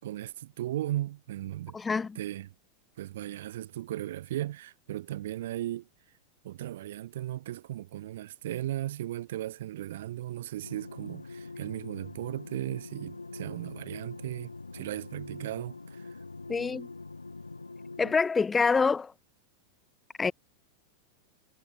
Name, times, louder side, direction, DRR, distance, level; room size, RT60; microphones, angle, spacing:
voice 1, 0.0-1.8 2.2-2.5 3.0-5.9 6.4-16.2, right 13 dB, 55° right, 5.7 m, -36 dB
voice 2, 1.7-2.2 16.5-16.9 18.0-19.1 20.2-20.3, left 5 dB, 15° left, 0.5 m, -26 dB
sound 1, 10.6-18.2, left 3 dB, 80° left, 2.7 m, -44 dB
figure-of-eight pair, 90°, 0 cm